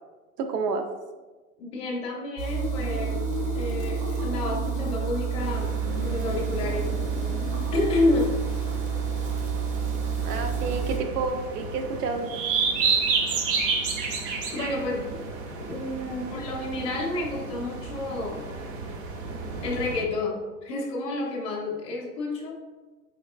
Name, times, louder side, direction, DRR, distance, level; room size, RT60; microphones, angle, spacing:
voice 1, 0.4-0.8 10.2-12.3, right 4 dB, 80° right, 6 dB, 0.6 m, -29 dB
voice 2, 1.6-3.2 3.5-5.8 6.0-6.9 7.7-8.3 14.5-15.2 15.5-18.5 19.6-22.6, left 2 dB, 15° left, -3 dB, 0.4 m, -29 dB
sound 1, 2.4-11.0, right 7 dB, 60° right, 1.1 m, -29 dB
sound 2, 2.7-5.0 5.6-7.8, left 7 dB, 65° left, 0.5 m, -37 dB
sound 3, 5.4-20.0, right 4 dB, 40° right, 0.5 m, -32 dB
3.7 x 3.1 x 2.4 m, 1.3 s
hypercardioid pair, 115°, 46 cm